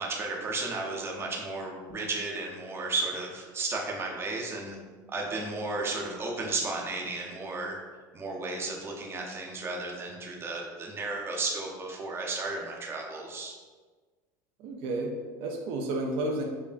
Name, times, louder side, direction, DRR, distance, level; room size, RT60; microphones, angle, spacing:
voice 1, 0.0-4.8 5.1-7.8 8.1-13.5, right 3 dB, 25° right, -1 dB, 0.7 m, -34 dB
voice 2, 14.6-16.4, right 2 dB, 60° right, 1 dB, 0.5 m, -31 dB
5.5 x 2.0 x 2.5 m, 1.4 s
supercardioid pair, 110°, 10 cm